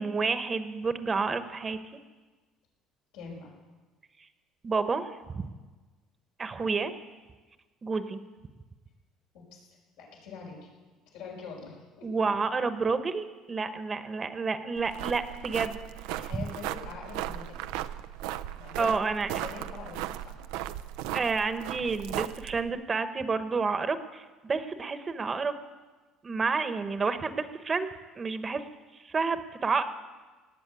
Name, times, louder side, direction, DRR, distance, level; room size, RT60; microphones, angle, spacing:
voice 1, 0.0-1.8 4.6-5.1 5.3-5.4 6.4-6.9 7.8-8.2 12.0-15.8 16.3-16.4 18.8-19.4 21.1-25.6 26.2-27.9 28.2-28.6 28.9-29.8, right 4 dB, 30° right, 10 dB, 1.1 m, -29 dB
voice 2, 3.1-3.5 9.3-10.7 11.1-12.2 16.1-17.7 18.5-18.9 19.4-20.4, left 5 dB, 85° left, -2 dB, 5.5 m, -44 dB
sound 1, 14.8-22.7, right 12 dB, 85° right, 0.5 m, -37 dB
18.0 x 7.7 x 9.1 m, 1.3 s
supercardioid pair, 90°, 0 cm